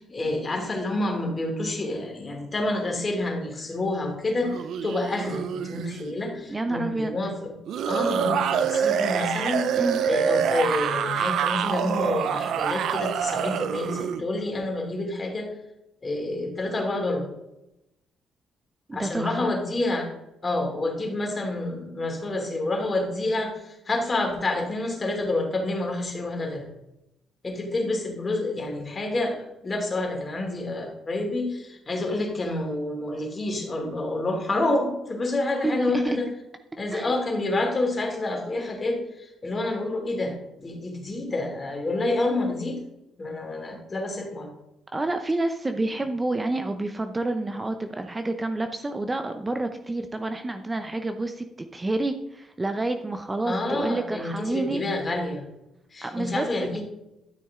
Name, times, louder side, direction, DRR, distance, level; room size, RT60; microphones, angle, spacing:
voice 1, 0.0-7.5 7.9-15.5 16.0-17.3 18.9-20.1 20.4-26.7 27.4-36.3 36.8-42.8 43.2-44.5 53.4-55.5 55.9-56.8, left 2 dB, 30° left, 1 dB, 2.9 m, -28 dB
sound 1, 4.4-6.1 7.7-14.2, right 7 dB, 75° right, 0.5 m, -26 dB
voice 2, 6.5-7.2 9.8-10.0 18.9-19.5 35.6-36.2 36.9-37.1 44.9-54.9 56.0-56.5, right 2 dB, 20° right, 7 dB, 0.7 m, -28 dB
12.0 x 6.3 x 3.7 m, 0.90 s
cardioid pair, 90°, 0 cm